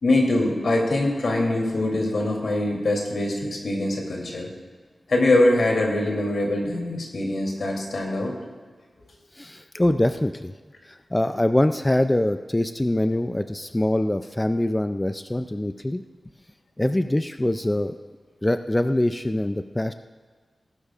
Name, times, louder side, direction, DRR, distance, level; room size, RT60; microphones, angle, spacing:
voice 1, 0.0-4.5 5.1-8.4 9.8-9.9, left 2 dB, 75° left, -1 dB, 3.0 m, -23 dB
voice 2, 9.3-10.5 10.9-16.0 16.8-18.0 18.4-19.9, left 1 dB, 15° left, 8 dB, 0.4 m, -24 dB
19.0 x 12.0 x 2.5 m, 1.5 s
wide cardioid pair, 115°, 0 cm